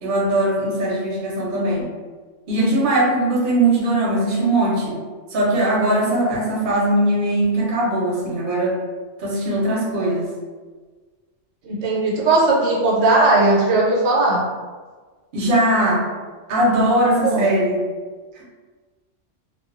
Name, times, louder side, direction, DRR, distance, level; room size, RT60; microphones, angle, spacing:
voice 1, 0.0-1.9 2.5-5.0 5.3-8.8 9.2-10.3 15.3-16.0 16.5-17.8, right 1 dB, 50° right, -5 dB, 0.8 m, -20 dB
voice 2, 11.6-14.4 17.2-17.6, right 2 dB, 85° right, -4 dB, 1.0 m, -18 dB
2.3 x 2.2 x 2.4 m, 1.4 s
omnidirectional pair, 1.3 m